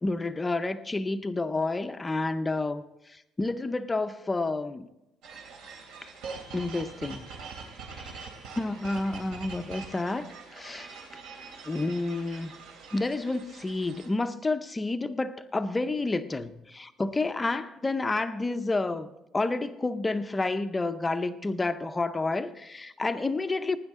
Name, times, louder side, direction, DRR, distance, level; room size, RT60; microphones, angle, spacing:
voice 1, 0.0-4.9 6.5-7.2 7.9-8.3 8.6-10.9 11.7-12.5 12.9-19.1 19.3-23.8, left 2 dB, 10° left, 0.5 m, -30 dB
sound 1, 5.2-14.1, right 5 dB, 80° right, 3.1 m, -44 dB
17.5 x 9.7 x 3.6 m
cardioid pair, 175°, 0 cm